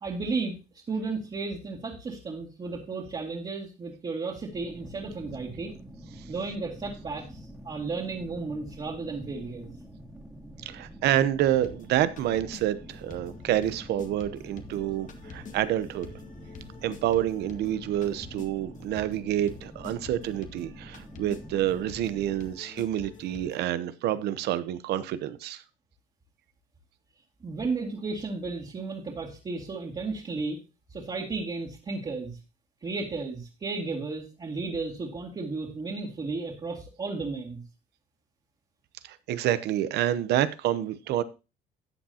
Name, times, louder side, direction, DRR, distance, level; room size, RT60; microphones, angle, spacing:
voice 1, 0.0-0.6 0.9-5.7 6.3-9.7 27.4-30.6 30.9-32.4 32.8-37.6, right 3 dB, 30° right, 2.3 m, -34 dB
sound 1, 4.5-22.5, equal, 5° right, 2.1 m, -47 dB
voice 2, 10.6-16.1 16.8-25.6 39.0-41.2, right 12 dB, 75° right, 0.9 m, -28 dB
sound 2, 11.6-23.7, left 5 dB, 50° left, 1.5 m, -48 dB
13.5 x 8.7 x 2.8 m
cardioid pair, 110°, 17 cm